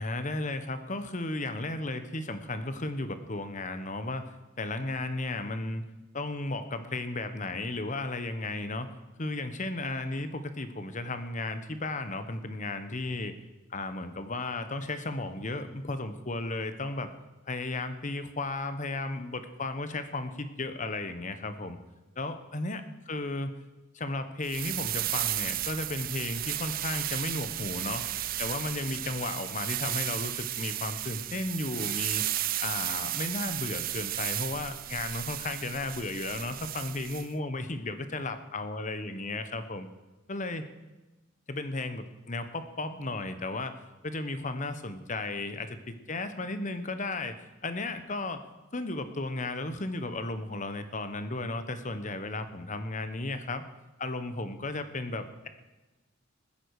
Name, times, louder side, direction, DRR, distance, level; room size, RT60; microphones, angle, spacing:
voice 1, 0.0-4.2 4.6-5.8 6.1-8.9 9.2-13.3 13.7-17.1 17.5-21.8 22.2-23.5 23.9-28.0 28.4-32.2 32.6-39.9 40.3-40.7 41.5-43.8 44.0-47.4 47.6-48.4 48.7-53.6 54.0-55.5, left 2 dB, 40° left, 10 dB, 1.1 m, -34 dB
sound 1, 24.4-37.3, right 14 dB, 45° right, 0.5 m, -34 dB
21.0 x 9.9 x 4.9 m, 1.1 s
head